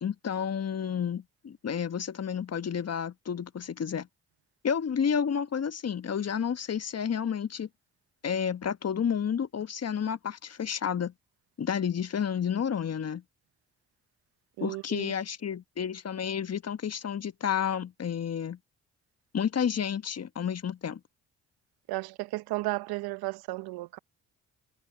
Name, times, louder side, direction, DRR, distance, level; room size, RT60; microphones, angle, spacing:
voice 1, 0.0-4.1 4.6-7.7 8.2-11.1 11.6-13.2 14.6-18.6 19.3-21.0, left 7 dB, 40° left, 1.3 m, -30 dB
voice 2, 14.6-15.1 21.9-24.0, right 20 dB, 75° right, 0.8 m, -34 dB
hypercardioid pair, 45°, 38 cm